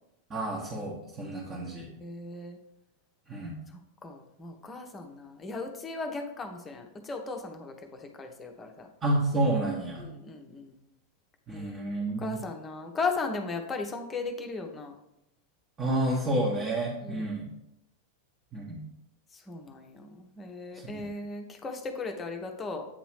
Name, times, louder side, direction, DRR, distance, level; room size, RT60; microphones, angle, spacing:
voice 1, 0.3-1.9 3.3-3.6 9.0-10.1 11.5-12.3 15.8-17.5 18.5-18.8 20.9-21.0, right 1 dB, 20° right, -4 dB, 1.1 m, -29 dB
voice 2, 1.4-2.6 3.7-8.9 10.0-10.8 11.5-11.9 12.2-14.9 17.0-17.4 19.3-22.8, left 3 dB, 20° left, 4 dB, 0.9 m, -37 dB
8.7 x 3.0 x 4.7 m, 0.85 s
figure-of-eight pair, 90°, 0 cm